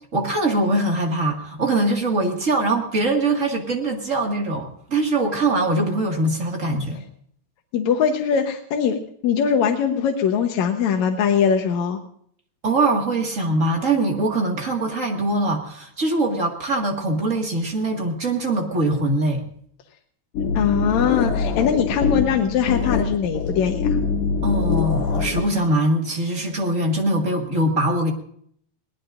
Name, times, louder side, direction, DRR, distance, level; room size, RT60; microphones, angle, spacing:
voice 1, 0.1-7.0 12.6-19.4 24.4-28.1, right 2 dB, 30° right, 1 dB, 1.9 m, -22 dB
voice 2, 7.7-9.0 9.2-12.0 20.5-24.0, left 7 dB, 70° left, 2 dB, 2.3 m, -21 dB
sound 1, 20.4-25.5, left 5 dB, 85° left, 3.1 m, -23 dB
22.5 x 18.5 x 2.6 m, 0.64 s
omnidirectional pair, 3.5 m